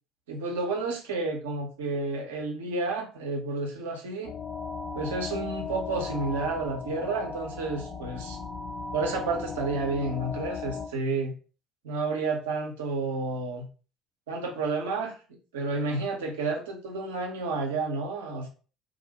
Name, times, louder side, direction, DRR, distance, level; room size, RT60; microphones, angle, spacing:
voice 1, 0.3-4.3 4.9-8.4 8.9-11.4 11.8-13.7 14.3-15.2 15.5-18.5, right 3 dB, 70° right, 2 dB, 0.5 m, -30 dB
sound 1, 4.2-10.9, left 4 dB, 45° left, 0.5 m, -37 dB
2.4 x 2.0 x 2.7 m, 0.37 s
figure-of-eight pair, 60°, 0 cm